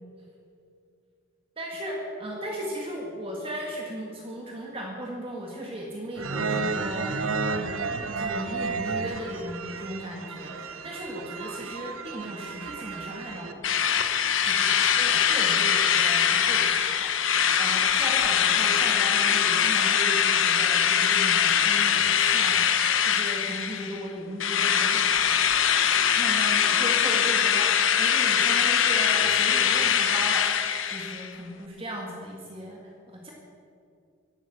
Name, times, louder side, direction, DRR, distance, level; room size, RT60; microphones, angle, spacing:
voice 1, 1.6-13.7 14.5-25.4 26.2-33.3, equal, 25° right, -1 dB, 1.9 m, -37 dB
sound 1, 6.2-13.5, right 4 dB, 90° right, 1.0 m, -32 dB
Drill, 13.6-24.0 24.4-31.3, left 8 dB, 70° left, 1.0 m, -22 dB
17.0 x 12.0 x 6.4 m, 2.5 s
head